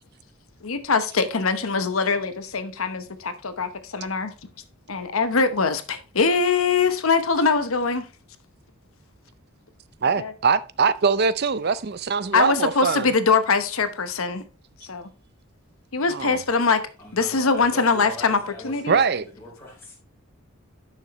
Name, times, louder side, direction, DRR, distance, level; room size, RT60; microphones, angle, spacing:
voice 1, 0.6-4.3 4.9-8.1 10.2-10.3 12.3-14.4 14.9-15.1 15.9-16.8 17.1-19.0, left 4 dB, 80° left, 1.0 m, -22 dB
voice 2, 10.0-13.1 16.1-16.4 18.9-19.2, right 5 dB, 50° right, 0.5 m, -22 dB
voice 3, 17.0-20.0, left 1 dB, 10° left, 3.5 m, -41 dB
11.0 x 6.4 x 3.1 m
head